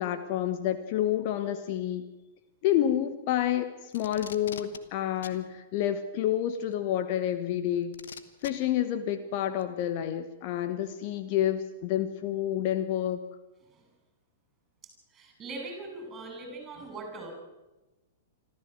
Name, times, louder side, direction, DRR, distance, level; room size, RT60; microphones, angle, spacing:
voice 1, 0.0-2.1 2.6-7.9 8.4-13.2, left 11 dB, 40° left, 10 dB, 1.3 m, -29 dB
Packing tape duct tape, 3.9-4.8 5.2-5.4 6.7-6.8 7.9-8.5 9.6-9.7, left 8 dB, 60° left, 1.4 m, -43 dB
voice 2, 15.1-17.3, right 3 dB, 20° right, 3 dB, 7.2 m, -40 dB
25.5 x 14.0 x 8.0 m, 1.1 s
figure-of-eight pair, 105°, 0 cm